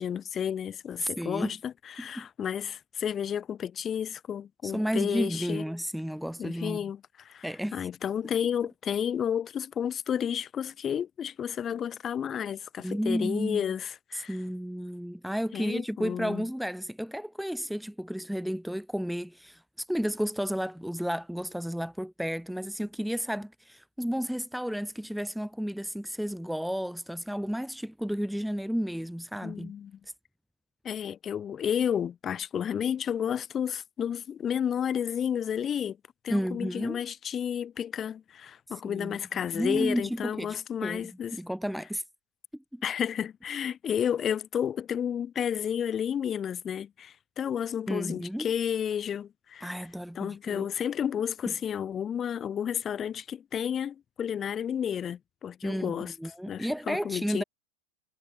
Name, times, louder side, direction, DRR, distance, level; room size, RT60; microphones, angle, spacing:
voice 1, 0.0-5.6 6.4-14.4 15.5-16.4 29.4-30.0 30.8-36.0 36.2-41.4 42.8-49.7 50.2-56.1 56.5-57.4, left 8 dB, 25° left, 2.5 m, -31 dB
voice 2, 1.0-1.5 2.0-2.3 4.6-6.9 7.4-7.8 12.8-13.6 14.3-19.6 19.9-29.7 36.3-37.0 38.8-39.2 39.5-41.0 41.3-42.0 42.7-42.8 47.9-48.5 49.6-50.7 55.6-57.4, equal, ahead, 2.5 m, -32 dB
figure-of-eight pair, 90°, 0 cm